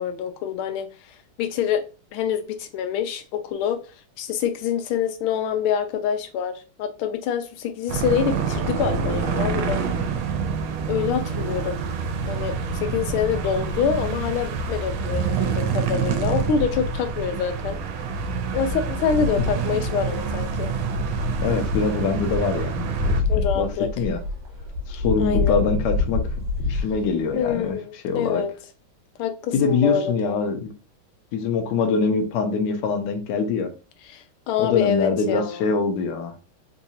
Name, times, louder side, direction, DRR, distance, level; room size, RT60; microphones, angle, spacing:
voice 1, 0.0-1.8 2.1-3.8 4.2-9.8 10.9-11.8 12.3-17.8 18.5-20.7 23.3-23.9 25.2-25.6 27.3-28.5 29.2-30.4 34.1-35.7, left 7 dB, 85° left, 1.4 m, -26 dB
sound 1, 7.9-23.2, right 6 dB, 80° right, 1.4 m, -27 dB
sound 2, 12.6-27.7, left 3 dB, 55° right, 1.5 m, -30 dB
voice 2, 21.4-23.1 23.5-23.7 24.0-24.2 24.9-26.2 26.7-27.8 28.0-28.4 29.5-30.7 31.3-33.7 34.6-36.3, left 5 dB, 70° left, 1.1 m, -24 dB
3.8 x 2.6 x 2.7 m
omnidirectional pair, 2.3 m